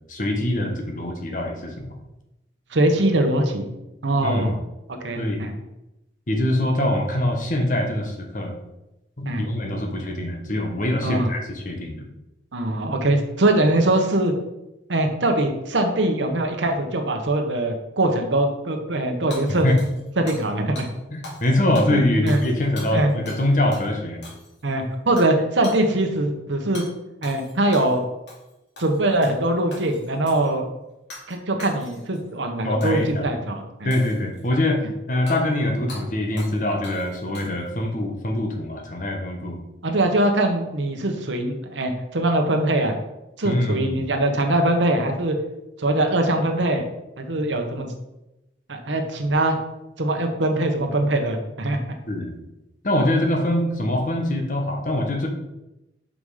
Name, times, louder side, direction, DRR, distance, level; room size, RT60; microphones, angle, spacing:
voice 1, 0.1-1.9 4.2-4.6 5.2-5.4 6.3-8.6 9.2-12.0 19.5-19.8 21.1-24.2 32.6-33.3 33.8-34.8 35.1-39.6 43.4-44.0 52.1-52.4 52.8-55.3, left 1 dB, 45° left, 2 dB, 1.2 m, -23 dB
voice 2, 2.7-3.7 4.0-4.6 5.0-5.5 9.2-9.5 11.0-11.3 12.5-14.3 14.9-19.7 20.2-20.9 21.9-22.4 22.9-23.1 24.6-26.8 27.2-28.0 28.8-30.6 31.3-33.9 39.8-42.9 43.4-45.4 45.8-46.8 47.2-47.9 48.7-49.6 50.0-51.8, right 1 dB, 85° right, 4 dB, 1.0 m, -22 dB
Hammer / Shatter, 19.3-20.5 20.8-20.9 21.2-21.5 21.7-23.4 23.7-23.9 24.2-24.7 25.2-25.3 25.6-25.8 26.7-26.9 27.2-28.0 28.3-28.5 28.8-29.4 29.7-30.5 31.1-31.3 31.6-32.2 32.8-33.1 33.9-34.5 35.3-35.4 35.9-36.0 36.4-36.6 36.8-37.7, left 2 dB, 75° left, 2.3 m, -41 dB
5.5 x 5.0 x 4.9 m, 0.93 s
head